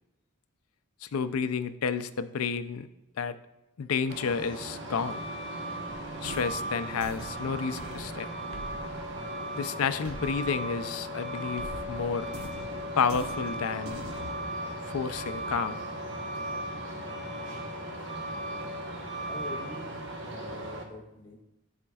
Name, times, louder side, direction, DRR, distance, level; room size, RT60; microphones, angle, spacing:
voice 1, 1.0-2.9 3.2-3.4 3.8-5.2 6.2-8.3 9.5-12.3 13.0-14.0 14.9-15.8, left 6 dB, 85° left, 12 dB, 0.4 m, -30 dB
Truck, 4.1-20.8, right 1 dB, 55° right, 1.0 m, -37 dB
sound 1, 5.9-11.2 11.6-14.3, right 1 dB, 85° right, 1.1 m, -45 dB
voice 2, 19.2-19.9 20.2-21.4, left 2 dB, 20° left, -1 dB, 0.9 m, -43 dB
12.5 x 4.3 x 2.3 m, 0.93 s
head